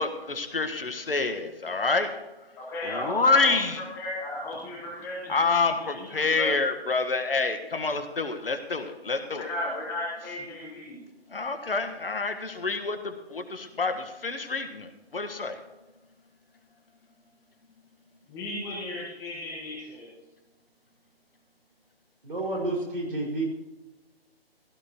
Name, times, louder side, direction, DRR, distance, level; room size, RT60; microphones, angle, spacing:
voice 1, 0.0-2.1 2.8-3.8 5.3-9.5 11.3-15.6, left 3 dB, 65° left, 7 dB, 1.5 m, -27 dB
voice 2, 2.6-6.6 9.1-11.0 18.3-20.1, left 1 dB, 10° left, -4 dB, 1.2 m, -35 dB
voice 3, 22.2-23.4, right 2 dB, 60° right, -1 dB, 5.3 m, -30 dB
16.0 x 13.5 x 3.0 m, 1.1 s
figure-of-eight pair, 145°, 31 cm